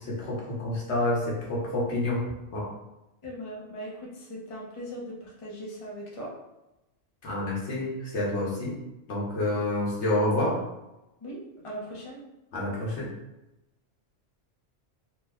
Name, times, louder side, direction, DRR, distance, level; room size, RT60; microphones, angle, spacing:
voice 1, 0.1-2.7 7.2-8.7 9.1-10.6 12.5-13.1, left 1 dB, 70° left, -4 dB, 1.1 m, -28 dB
voice 2, 3.2-6.3 11.2-12.2, equal, 35° left, -3 dB, 0.6 m, -39 dB
3.0 x 2.1 x 3.4 m, 0.95 s
omnidirectional pair, 1.2 m